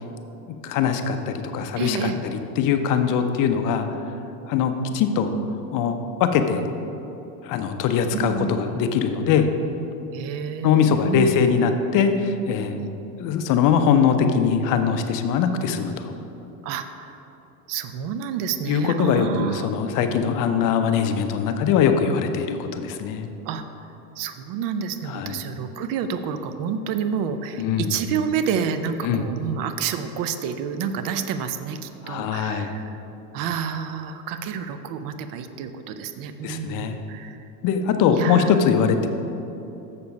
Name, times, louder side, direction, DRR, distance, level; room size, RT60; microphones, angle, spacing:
voice 1, 0.6-2.1 2.6-3.9 4.5-5.3 5.7-6.6 7.4-9.5 10.6-12.8 13.2-16.1 18.7-23.3 25.1-25.4 27.6-27.9 29.0-29.2 32.1-32.7 36.4-36.9 37.6-39.1, left 7 dB, 45° left, 7 dB, 0.7 m, -21 dB
voice 2, 1.8-2.2 8.1-8.5 10.1-11.3 12.8-12.9 16.6-17.2 17.7-19.7 23.5-23.6 24.2-33.0 33.3-37.4 38.1-38.6, right 7 dB, 50° right, 9 dB, 0.6 m, -29 dB
6.9 x 6.8 x 5.3 m, 3.0 s
supercardioid pair, 110°, 44 cm